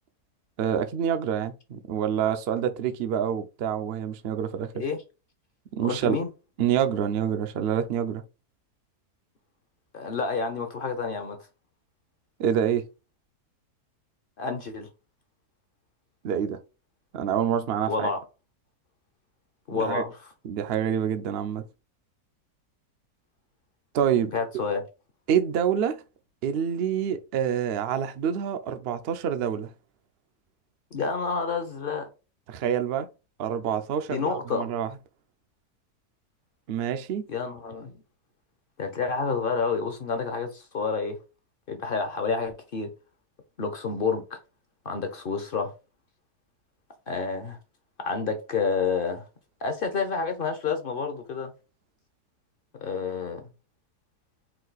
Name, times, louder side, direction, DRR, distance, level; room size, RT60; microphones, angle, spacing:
voice 1, 0.6-4.8 5.7-6.2 6.6-8.2 12.4-12.8 16.2-16.6 17.1-18.1 19.7-20.0 20.4-21.6 23.9-24.3 25.3-26.0 26.4-29.7 32.5-33.1 33.4-34.9 36.7-37.2, right 8 dB, 75° right, 0.5 m, -27 dB
voice 2, 5.8-6.3 9.9-11.4 14.4-14.9 17.9-18.2 19.7-20.2 24.3-24.8 30.9-32.1 34.1-34.7 37.3-38.0 38.8-41.2 41.7-42.9 43.6-44.4 44.8-45.7 47.1-47.6 48.0-49.2 49.6-51.5 52.8-53.4, left 5 dB, 50° left, 0.6 m, -29 dB
4.6 x 2.4 x 3.9 m
omnidirectional pair, 1.7 m